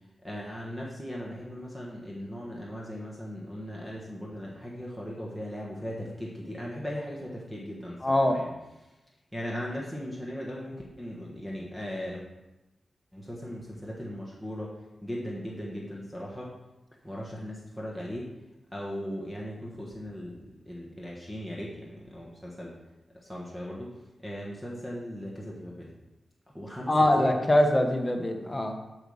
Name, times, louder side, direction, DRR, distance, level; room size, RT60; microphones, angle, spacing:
voice 1, 0.2-8.5 9.3-12.2 13.1-14.7 15.0-16.5 17.0-18.3 18.7-20.4 20.7-22.7 23.2-23.9 24.2-25.9 26.5-27.3, equal, 5° right, -4 dB, 1.3 m, -38 dB
voice 2, 8.0-8.4 26.9-28.7, left 1 dB, 15° left, 4 dB, 1.0 m, -23 dB
8.1 x 4.9 x 7.1 m, 1.0 s
wide cardioid pair, 155°, 0 cm